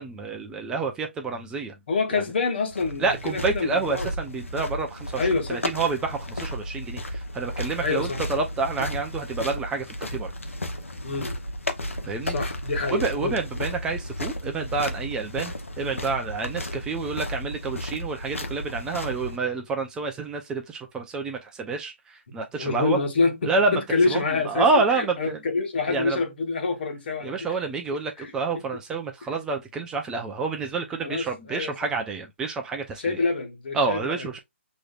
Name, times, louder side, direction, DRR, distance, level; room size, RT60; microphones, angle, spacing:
voice 1, 0.0-1.7 2.1-2.2 3.0-10.3 12.1-12.3 12.9-23.0 23.4-23.8 24.1-25.4 25.9-26.2 27.2-33.2 33.7-34.4, right 4 dB, 10° right, 0.5 m, -28 dB
voice 2, 1.9-4.1 5.1-5.6 7.8-8.2 11.0-11.3 12.3-13.3 16.7-16.8 22.6-27.5 28.2-28.6 29.2-29.3 31.0-31.9 33.0-34.3, left 4 dB, 55° left, 1.3 m, -27 dB
sound 1, 2.7-19.4, left 1 dB, 80° left, 0.9 m, -33 dB
6.3 x 3.0 x 2.4 m
figure-of-eight pair, 135°, 7 cm